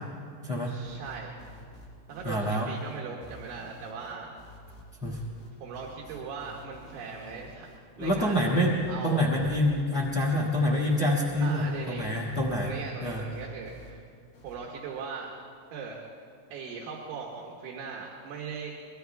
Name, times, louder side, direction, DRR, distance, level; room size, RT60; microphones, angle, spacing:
voice 1, 0.6-1.3 2.1-4.3 5.6-7.7 8.0-8.4 8.9-9.3 11.4-12.2 12.6-14.0 14.4-15.3 15.7-16.0 16.5-18.7, right 5 dB, 75° right, -2 dB, 3.5 m, -39 dB
sound 1, 0.8-13.9 14.3-14.6, left 1 dB, 85° left, 7.2 m, -50 dB
voice 2, 2.2-2.7 5.0-5.2 8.0-8.7 9.0-12.7 13.0-13.2, left 1 dB, 50° left, -3 dB, 1.6 m, -26 dB
25.0 x 22.5 x 2.3 m, 2.3 s
omnidirectional pair, 5.7 m